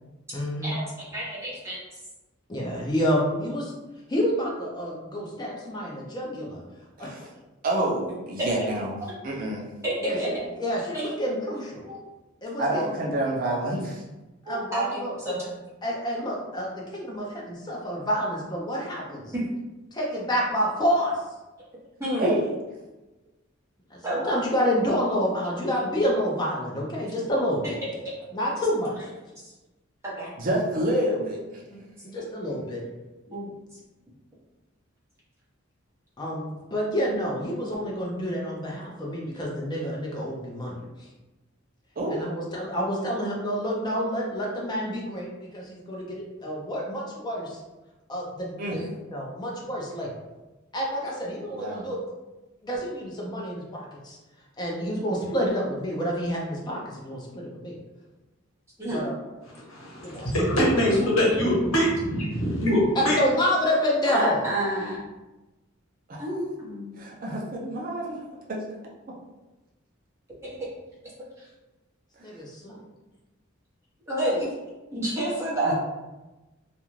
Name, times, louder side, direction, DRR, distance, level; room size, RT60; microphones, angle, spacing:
voice 1, 0.3-0.7 2.5-3.7 4.1-6.6 7.0-7.1 10.0-10.2 10.6-11.8 12.4-13.0 14.5-15.1 15.8-19.3 19.9-21.1 23.9-27.8 28.3-29.1 31.7-32.8 36.2-40.8 42.1-47.6 48.1-48.8 49.1-50.1 50.7-52.0 52.6-54.2 54.6-57.7 58.9-59.1 60.0-60.3 62.9-64.4, equal, 20° left, -3 dB, 0.5 m, -28 dB
voice 2, 1.1-1.8 8.4-8.5 9.0-9.1 9.8-10.3 10.9-11.1 11.9-12.0 14.5-15.5 19.3-19.4 22.0-22.3 24.0-24.3 29.4-29.5 30.0-30.3 33.3-33.5 48.7-48.9 58.8-59.1 64.0-65.0 66.2-67.0 70.4-70.7 71.4-71.5 74.1-74.5 74.9-75.7, right 1 dB, 15° right, -8 dB, 0.9 m, -29 dB
voice 3, 7.6-9.0 9.2-9.7 12.6-14.0 22.2-22.4 30.4-31.6 42.0-42.2 48.6-48.8 51.5-51.9 66.1-66.2 67.0-68.2 68.5-68.6 75.6-75.7, right 1 dB, 45° right, -2 dB, 0.5 m, -28 dB
voice 4, 59.7-63.2, equal, 85° left, -4 dB, 0.9 m, -23 dB
2.4 x 2.2 x 3.0 m, 1.1 s
head